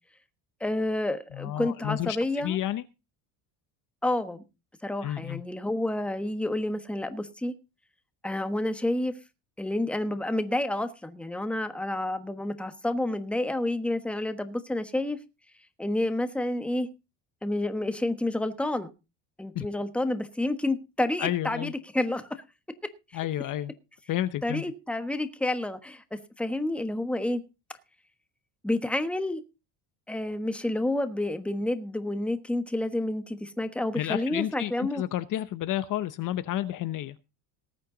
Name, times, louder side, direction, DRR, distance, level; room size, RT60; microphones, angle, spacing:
voice 1, 0.6-2.6 4.0-4.4 4.8-7.5 8.2-9.2 9.6-15.2 15.8-16.9 17.4-18.9 19.4-22.4 23.1-23.2 24.4-27.4 28.6-29.4 30.1-35.0, left 1 dB, 5° left, 1.2 m, -29 dB
voice 2, 1.3-2.8 5.0-5.4 19.5-19.7 21.2-21.7 23.1-23.7 24.1-24.6 33.9-37.1, left 13 dB, 45° left, 0.8 m, -31 dB
19.0 x 8.9 x 3.9 m
cardioid pair, 150°, 43 cm